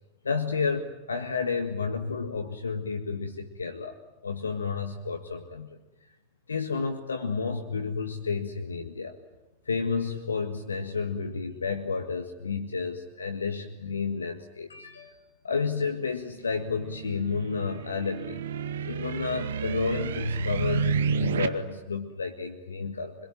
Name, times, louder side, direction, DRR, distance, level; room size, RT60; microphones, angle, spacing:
voice 1, 0.2-4.0 4.2-5.8 6.5-9.1 9.7-15.2 15.4-18.4 18.9-23.1, left 5 dB, 75° left, 5 dB, 1.7 m, -31 dB
sound 1, 16.5-21.5, right 6 dB, 65° right, 1.4 m, -30 dB
25.0 x 22.5 x 9.1 m, 0.99 s
figure-of-eight pair, 90°, 0 cm